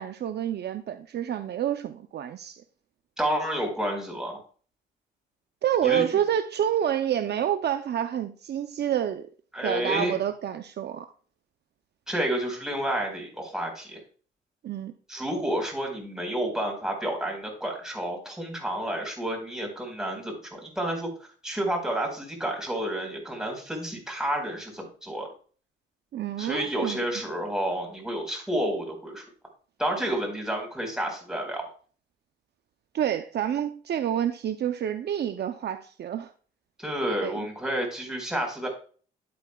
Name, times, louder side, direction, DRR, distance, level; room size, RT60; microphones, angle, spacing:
voice 1, 0.0-2.6 5.6-9.3 9.6-11.1 14.6-14.9 26.1-27.0 32.9-36.3 37.2-37.4, right 10 dB, 55° right, 0.6 m, -28 dB
voice 2, 3.2-4.4 5.8-6.0 9.5-10.2 12.1-14.0 15.1-25.3 26.4-29.2 29.8-31.7 36.8-38.7, right 1 dB, 5° right, 4.4 m, -30 dB
11.5 x 8.6 x 2.3 m
cardioid pair, 90°, 20 cm